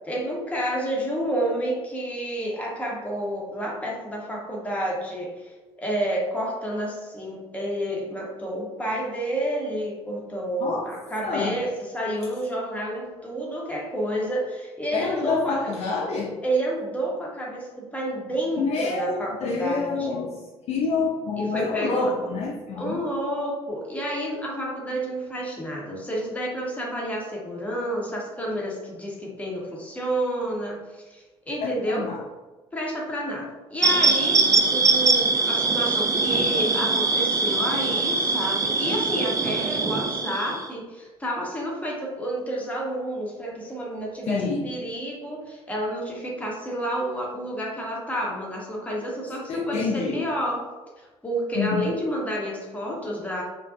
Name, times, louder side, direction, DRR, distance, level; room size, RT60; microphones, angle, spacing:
voice 1, 0.0-15.7 16.4-20.2 21.4-22.2 22.8-32.1 32.7-50.6 51.0-53.4, right 1 dB, 10° left, -3 dB, 0.8 m, -30 dB
voice 2, 10.6-10.9 11.2-11.6 14.9-16.3 18.6-20.4 20.7-23.0 31.6-32.2 44.3-44.7 49.5-50.3 51.5-51.9, left 4 dB, 45° left, -2 dB, 0.4 m, -27 dB
sound 1, 33.8-40.7, right 3 dB, 25° right, 0.3 m, -22 dB
2.4 x 2.1 x 2.4 m, 1.2 s
hypercardioid pair, 55°, 15 cm